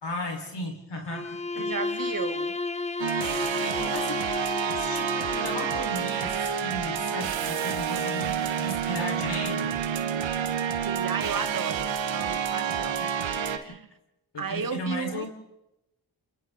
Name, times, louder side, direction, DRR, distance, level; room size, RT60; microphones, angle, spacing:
voice 1, 0.0-2.0 3.6-4.2 4.7-10.3 13.0-13.2 14.3-15.3, left 1 dB, 65° left, 4.8 m, -36 dB
Bowed string instrument, 1.0-6.0, left 3 dB, 15° left, 1.1 m, -32 dB
voice 2, 1.5-2.6 10.8-13.0 13.5-13.9 14.4-15.3, right 5 dB, 50° right, 1.5 m, -34 dB
sound 1, 3.0-13.6, right 7 dB, 85° right, 1.3 m, -29 dB
28.5 x 27.0 x 3.9 m
cardioid pair, 45°, 45 cm